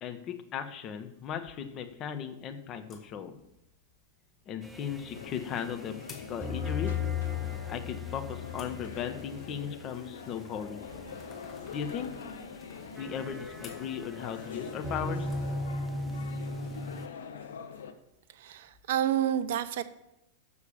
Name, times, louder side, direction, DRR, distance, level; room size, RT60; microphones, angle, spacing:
voice 1, 0.0-3.4 4.5-7.0 7.7-10.9 11.7-12.4 13.0-15.3, left 8 dB, 35° left, 7 dB, 0.9 m, -37 dB
sound 1, 1.2-19.0, left 3 dB, 20° left, 2.3 m, -60 dB
sound 2, 4.6-17.1, left 4 dB, 10° right, 0.6 m, -38 dB
sound 3, 5.1-17.9, left 6 dB, 65° left, 0.7 m, -44 dB
voice 2, 18.3-19.8, right 10 dB, 55° right, 13 dB, 0.6 m, -29 dB
6.9 x 6.5 x 7.0 m, 0.86 s
figure-of-eight pair, 90°, 0 cm